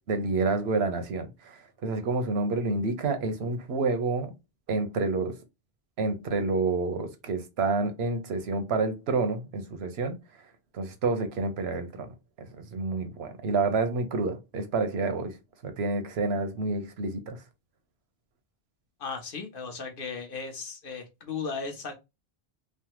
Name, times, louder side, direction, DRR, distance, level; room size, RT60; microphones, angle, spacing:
voice 1, 0.1-4.3 4.7-5.4 6.0-10.2 10.7-12.1 12.4-15.3 15.6-17.4, right 3 dB, 85° right, 0.9 m, -29 dB
voice 2, 19.0-21.9, left 5 dB, 60° left, 0.9 m, -36 dB
3.3 x 2.0 x 2.9 m
omnidirectional pair, 1.0 m